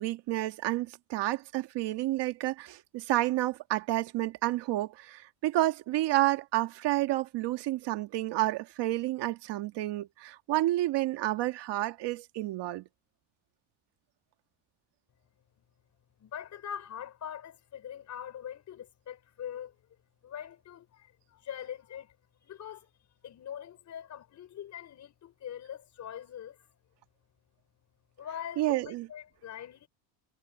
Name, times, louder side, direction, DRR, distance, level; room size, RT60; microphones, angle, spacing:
voice 1, 0.0-12.8 28.6-29.1, right 16 dB, 55° right, 1.7 m, -30 dB
voice 2, 16.2-19.8 20.2-22.2 22.4-22.9 23.2-26.6 28.2-29.9, left 9 dB, 35° left, 4.2 m, -43 dB
cardioid pair, 170°, 48 cm